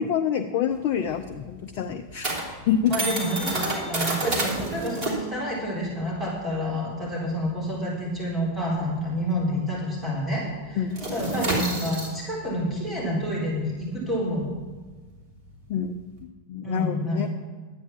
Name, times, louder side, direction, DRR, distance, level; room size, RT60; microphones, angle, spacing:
voice 1, 0.0-2.4 2.7-2.9 10.8-11.1 15.7-16.0 16.5-17.3, left 8 dB, 45° left, 6 dB, 0.6 m, -26 dB
sound 1, 0.7-9.7 9.9-10.2 10.5-16.2, right 2 dB, 35° right, 3.3 m, -31 dB
voice 2, 2.9-10.8 11.1-14.5 16.6-17.3, equal, 10° right, -5 dB, 4.0 m, -28 dB
11.5 x 9.4 x 5.8 m, 1.4 s
figure-of-eight pair, 90°, 0 cm